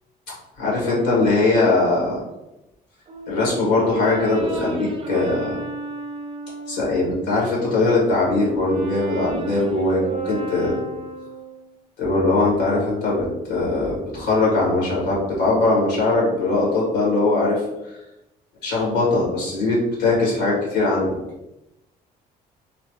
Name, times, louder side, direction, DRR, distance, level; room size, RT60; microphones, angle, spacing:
voice 1, 0.6-2.2 3.3-5.6 6.7-10.8 12.0-17.6 17.9-18.0 18.6-21.2, left 2 dB, 85° left, -4 dB, 1.5 m, -21 dB
Brass instrument, 3.1-7.1 7.6-11.7, right 3 dB, 35° right, 0.4 m, -34 dB
3.0 x 2.3 x 3.0 m, 0.93 s
cardioid pair, 110°, 17 cm